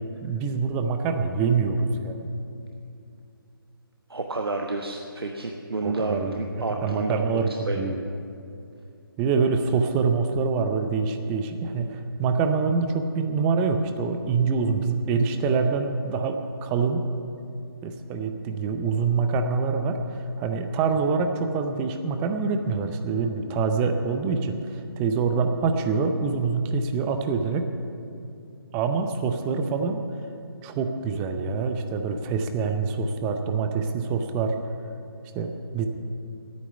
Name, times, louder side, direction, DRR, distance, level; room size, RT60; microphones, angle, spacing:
voice 1, 0.2-2.3 5.8-6.4 6.8-8.0 9.2-17.1 17.8-27.7 28.7-30.0 30.6-34.5 35.3-35.9, right 5 dB, 15° right, 6 dB, 0.6 m, -25 dB
voice 2, 4.1-7.8, right 3 dB, 80° right, 2 dB, 1.1 m, -30 dB
10.0 x 9.5 x 9.8 m, 2.6 s
figure-of-eight pair, 150°, 13 cm